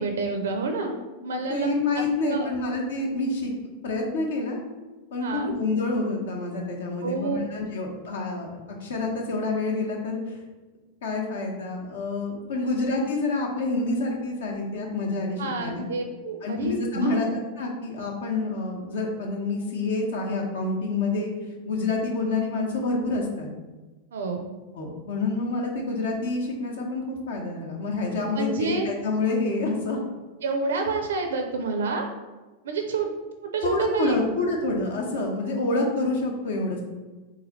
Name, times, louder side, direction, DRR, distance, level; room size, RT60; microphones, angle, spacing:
voice 1, 0.0-2.5 5.2-5.5 7.0-7.4 12.6-12.7 15.4-17.3 24.1-24.4 28.3-28.9 30.4-32.1 32.6-33.1 33.4-34.2, right 4 dB, 65° right, 4 dB, 0.4 m, -28 dB
voice 2, 1.3-3.5 3.8-4.6 5.1-10.4 11.0-15.8 16.4-21.3 21.7-23.5 24.7-30.0 33.6-36.8, left 3 dB, 60° left, 1 dB, 0.8 m, -28 dB
4.0 x 2.6 x 4.0 m, 1.2 s
figure-of-eight pair, 90°, 0 cm